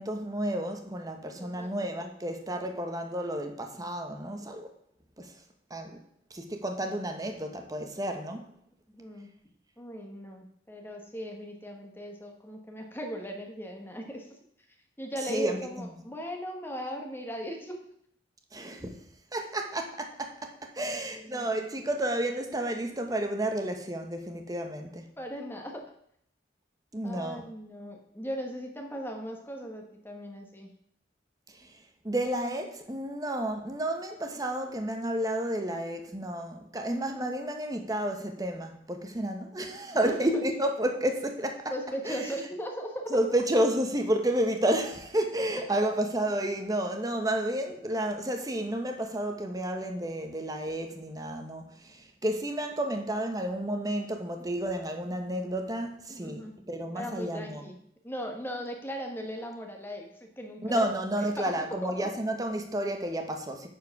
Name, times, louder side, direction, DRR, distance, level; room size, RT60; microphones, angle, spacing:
voice 1, 0.0-4.7 5.2-5.3 5.7-6.0 6.3-8.4 15.3-15.9 18.5-18.9 19.3-25.1 26.9-27.5 32.0-41.7 42.0-42.2 43.1-57.6 60.6-63.7, right 1 dB, 20° right, 1.0 m, -31 dB
voice 2, 1.4-1.7 9.0-9.3 9.8-14.3 15.0-17.8 20.7-21.5 25.2-25.8 27.0-30.7 39.9-40.3 41.7-43.2 45.6-45.7 56.2-56.5 56.9-57.8 58.0-60.8 61.4-61.5 61.8-62.1, equal, 10° left, 1.2 m, -38 dB
9.6 x 4.7 x 5.9 m
head